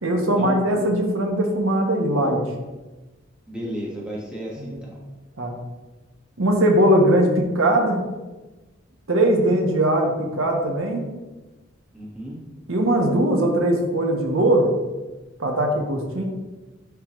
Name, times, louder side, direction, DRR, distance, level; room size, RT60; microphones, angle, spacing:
voice 1, 0.0-2.4 4.6-4.8 5.4-5.5 6.4-8.0 9.1-11.0 12.7-14.7 15.4-16.2, right 1 dB, 90° right, 2 dB, 1.1 m, -20 dB
voice 2, 3.5-5.0 11.9-12.4, right 1 dB, 5° right, -5 dB, 1.4 m, -33 dB
10.5 x 3.8 x 3.1 m, 1.2 s
head